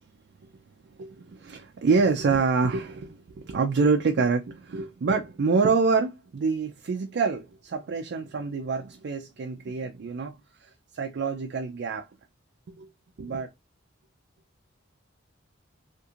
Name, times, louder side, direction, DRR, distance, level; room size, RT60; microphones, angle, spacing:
voice 1, 1.0-12.1 12.8-12.9 13.2-13.5, right 4 dB, 60° right, 0.4 m, -26 dB
2.5 x 2.4 x 2.8 m
head